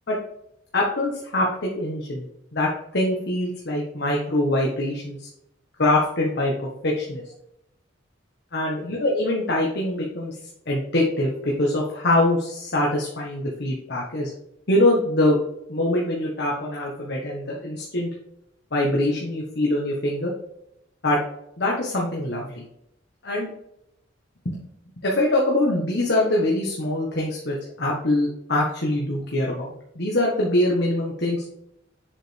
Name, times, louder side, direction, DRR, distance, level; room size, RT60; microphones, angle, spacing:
voice 1, 0.7-2.3 2.5-5.3 5.8-7.2 8.5-10.4 10.7-14.3 14.7-15.4 15.7-18.1 18.7-20.3 21.0-21.2 21.6-22.6 23.2-23.5 24.4-24.6 25.0-31.4, left 1 dB, 60° left, -3 dB, 1.4 m, -23 dB
7.4 x 5.1 x 3.4 m, 0.80 s
head